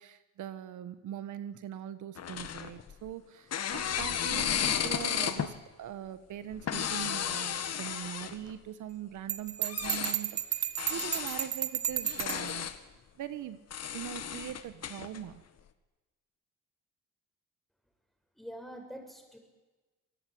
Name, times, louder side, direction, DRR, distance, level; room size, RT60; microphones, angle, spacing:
voice 1, 0.0-12.7 13.2-13.6 13.9-15.4, right 11 dB, 80° right, 12 dB, 1.4 m, -42 dB
sound 1, 2.2-3.1 3.5-5.5 6.5-8.5 9.6-10.2 10.8-11.5 12.0-12.8 13.7-15.2, left 9 dB, 55° left, 1.9 m, -33 dB
Bell, 9.3-12.5, right 10 dB, 65° right, 1.6 m, -33 dB
voice 2, 18.4-19.4, equal, ahead, 4 dB, 7.0 m, -45 dB
27.0 x 19.5 x 9.4 m, 1.2 s
cardioid pair, 90°, 30 cm